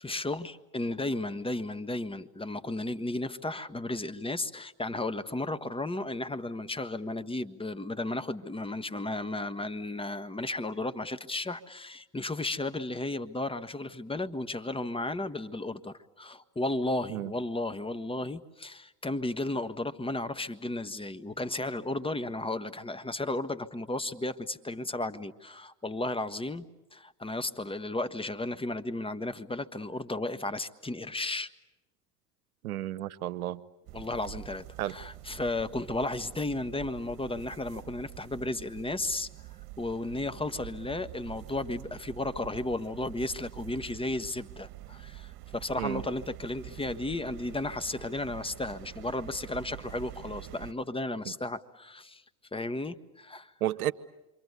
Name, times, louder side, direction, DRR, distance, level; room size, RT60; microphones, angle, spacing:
voice 1, 0.0-31.5 33.9-39.3 39.8-52.2 52.5-53.5, left 2 dB, 10° left, 1.5 m, -34 dB
voice 2, 32.6-33.6 34.8-34.9 45.8-46.0 53.6-53.9, right 13 dB, 90° right, 0.9 m, -32 dB
sound 1, 33.9-50.7, right 18 dB, 60° right, 1.7 m, -46 dB
28.0 x 25.5 x 8.3 m
hypercardioid pair, 75°, 43 cm